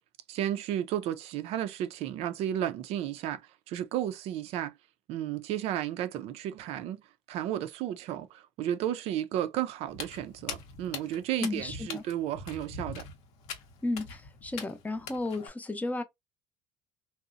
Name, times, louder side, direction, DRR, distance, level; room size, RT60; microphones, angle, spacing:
voice 1, 0.3-3.4 3.7-4.7 5.1-7.0 7.3-13.0, right 11 dB, 70° right, 0.4 m, -33 dB
Walk footsteps, 9.9-15.5, left 5 dB, 75° left, 0.7 m, -42 dB
voice 2, 11.4-12.0 13.8-16.0, left 2 dB, 15° left, 0.5 m, -33 dB
2.7 x 2.0 x 2.4 m
supercardioid pair, 90°, 11 cm